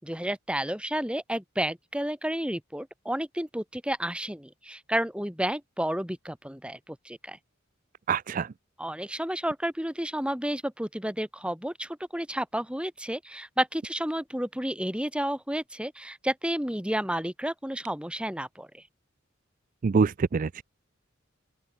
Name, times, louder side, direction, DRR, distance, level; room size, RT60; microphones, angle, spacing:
voice 1, 0.0-7.4 8.8-18.8, right 1 dB, 5° right, 6.4 m, -31 dB
voice 2, 8.1-8.5 19.8-20.6, right 5 dB, 40° right, 0.4 m, -25 dB
open air
head